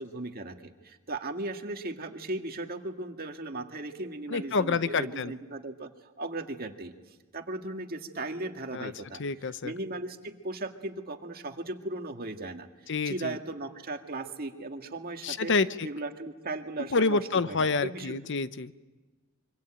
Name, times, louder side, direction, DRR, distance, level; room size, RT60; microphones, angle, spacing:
voice 1, 0.0-6.9 7.3-9.2 9.6-15.5 15.8-17.2 17.5-18.2, right 2 dB, 45° right, 5 dB, 2.0 m, -37 dB
voice 2, 4.3-5.3 8.7-8.9 9.2-9.7 12.9-13.4 15.2-15.9 16.9-18.7, left 4 dB, 60° left, 14 dB, 0.8 m, -28 dB
25.5 x 24.5 x 8.9 m, 1.3 s
head